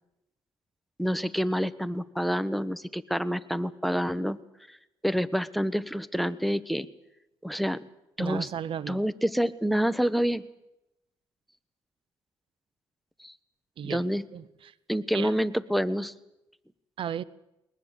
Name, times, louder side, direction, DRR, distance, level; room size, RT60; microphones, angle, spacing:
voice 1, 1.0-4.4 4.7-4.8 5.0-6.9 7.4-7.8 8.2-8.5 8.9-10.4 13.2-13.3 13.8-14.2 14.9-16.1, equal, ahead, 16 dB, 1.2 m, -27 dB
voice 2, 8.2-9.0 13.8-14.0 14.3-14.7 15.1-15.3 17.0-17.2, right 9 dB, 65° right, 18 dB, 0.9 m, -34 dB
21.5 x 20.5 x 8.2 m, 0.89 s
cardioid pair, 80°, 10 cm